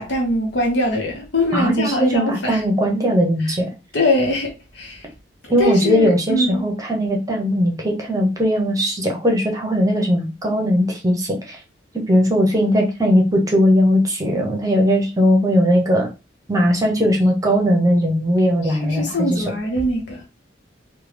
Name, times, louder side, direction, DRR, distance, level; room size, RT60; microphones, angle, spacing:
voice 1, 0.0-2.6 3.4-3.6 3.9-5.1 5.6-6.6 18.6-20.2, left 1 dB, 70° left, 1.0 m, -22 dB
voice 2, 1.5-3.7 5.5-11.6 11.9-16.1 16.5-19.4, equal, 20° right, 0.8 m, -18 dB
3.3 x 2.2 x 3.3 m
head